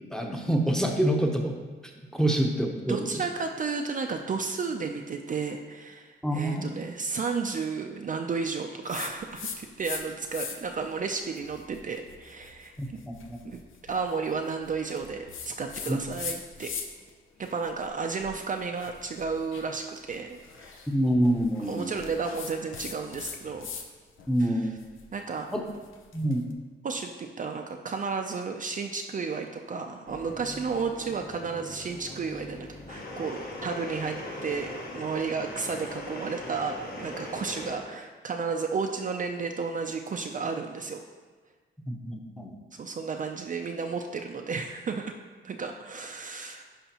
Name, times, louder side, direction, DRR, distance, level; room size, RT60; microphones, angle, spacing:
voice 1, 0.1-1.5 2.1-3.1 6.2-6.8 12.8-12.9 13.3-13.4 15.9-16.0 20.9-21.9 24.3-24.8 25.5-25.6 26.1-26.4 41.9-42.5, right 1 dB, 5° left, 1 dB, 0.8 m, -26 dB
voice 2, 2.9-13.0 13.4-16.7 17.4-20.9 21.6-23.7 24.4-24.7 25.1-25.5 26.8-41.0 42.7-45.2 45.4-46.6, right 5 dB, 40° right, 3 dB, 0.5 m, -33 dB
sound 1, 8.9-10.0 10.3-10.8 11.3-17.1 17.4-23.9 24.2-26.4, left 6 dB, 90° left, 0.7 m, -41 dB
sound 2, 30.1-37.8, left 1 dB, 50° left, 1.4 m, -40 dB
11.0 x 5.1 x 2.9 m, 1.4 s
wide cardioid pair, 115°, 20 cm